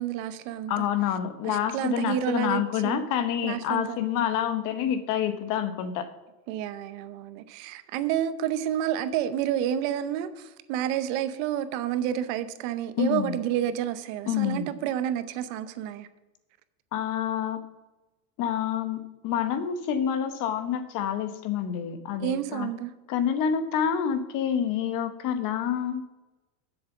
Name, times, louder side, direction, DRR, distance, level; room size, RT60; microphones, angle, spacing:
voice 1, 0.0-0.8 1.4-3.1 3.4-4.0 6.5-16.1 22.2-22.9, right 10 dB, 55° right, 0.9 m, -30 dB
voice 2, 0.7-6.1 13.0-13.4 14.3-14.7 16.9-17.6 18.4-22.7 23.1-26.0, left 9 dB, 40° left, 1.0 m, -28 dB
7.4 x 7.2 x 7.3 m
supercardioid pair, 150°, 49 cm